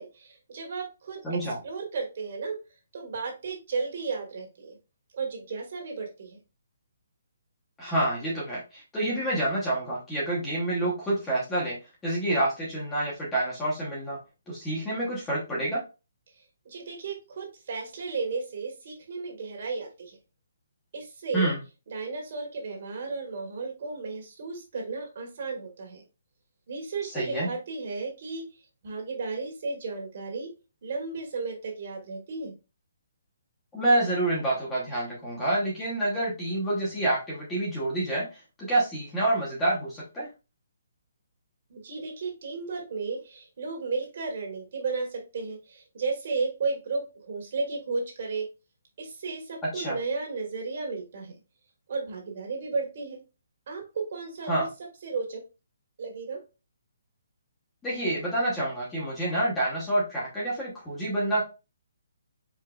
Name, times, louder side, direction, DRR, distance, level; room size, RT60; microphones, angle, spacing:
voice 1, 0.0-1.4 1.6-2.6 2.9-4.8 5.1-6.4 16.7-20.2 20.9-21.5 21.9-26.0 26.7-28.4 28.8-30.5 30.8-32.5 41.7-48.5 49.0-51.3 51.9-53.2 53.7-54.7 55.0-55.4 56.0-56.4, right 4 dB, 40° right, 2 dB, 1.7 m, -34 dB
voice 2, 1.2-1.6 7.8-11.8 12.0-14.2 14.5-15.8 21.3-21.6 27.1-27.5 33.7-40.3 49.7-50.0 54.5-54.7 57.8-61.4, right 1 dB, 5° left, -6 dB, 1.1 m, -28 dB
4.8 x 4.3 x 2.4 m, 0.28 s
hypercardioid pair, 175°, 0 cm